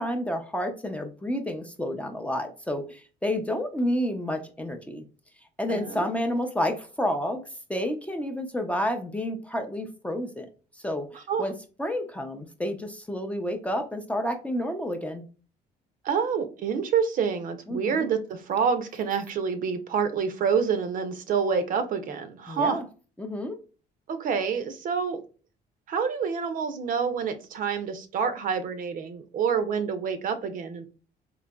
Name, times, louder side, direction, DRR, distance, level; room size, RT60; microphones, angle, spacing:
voice 1, 0.0-5.0 5.6-7.4 7.7-10.5 10.8-11.5 11.8-15.3 17.7-18.1 22.5-22.8 23.2-23.5, left 1 dB, 10° left, 5 dB, 0.5 m, -30 dB
voice 2, 5.7-6.1 11.3-11.4 16.0-22.8 24.1-25.2 25.9-30.9, right 6 dB, 55° right, 10 dB, 0.6 m, -27 dB
3.9 x 2.7 x 2.2 m, 0.36 s
cardioid pair, 110°, 17 cm